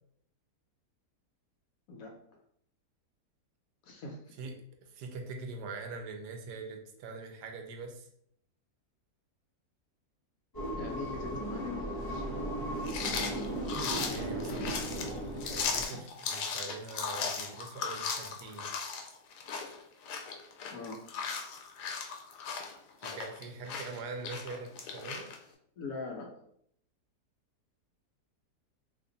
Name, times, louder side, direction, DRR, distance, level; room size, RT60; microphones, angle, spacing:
voice 1, 1.9-2.4 3.8-4.3 10.8-12.3 20.7-21.0 25.8-26.4, left 4 dB, 65° left, 2 dB, 0.9 m, -42 dB
voice 2, 4.4-8.1 14.1-18.7 23.0-25.3, right 4 dB, 80° right, 3 dB, 1.2 m, -43 dB
sound 1, 10.5-15.9, right 1 dB, 30° left, 0.4 m, -36 dB
sound 2, 12.8-25.4, left 5 dB, 85° left, 1.2 m, -37 dB
2.9 x 2.5 x 3.8 m, 0.68 s
omnidirectional pair, 1.8 m